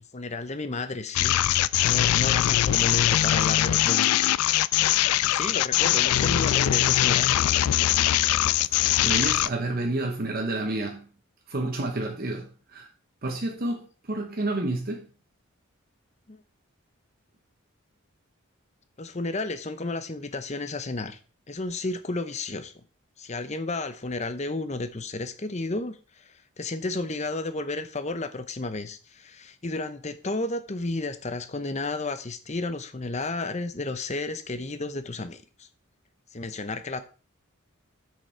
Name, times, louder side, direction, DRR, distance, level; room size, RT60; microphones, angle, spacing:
voice 1, 0.0-1.4 1.8-4.4 4.9-7.4 16.3-16.4 19.0-21.2 21.5-22.7 23.2-35.7 36.3-37.0, left 2 dB, 30° left, 0.8 m, -32 dB
sound 1, 1.2-9.5, left 13 dB, 90° left, 0.4 m, -22 dB
voice 2, 9.0-11.1 11.5-12.9 13.2-15.1, right 2 dB, 45° right, 0.9 m, -29 dB
8.2 x 6.6 x 4.5 m
head